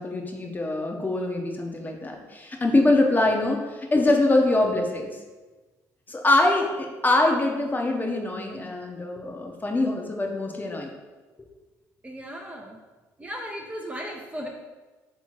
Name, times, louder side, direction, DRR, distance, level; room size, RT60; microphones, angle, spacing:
voice 1, 0.0-5.1 6.1-10.9, left 2 dB, 20° left, 1 dB, 0.8 m, -24 dB
voice 2, 12.0-12.8 13.2-14.5, equal, 15° right, 0 dB, 0.6 m, -36 dB
3.5 x 3.0 x 4.5 m, 1.3 s
hypercardioid pair, 60°, 8 cm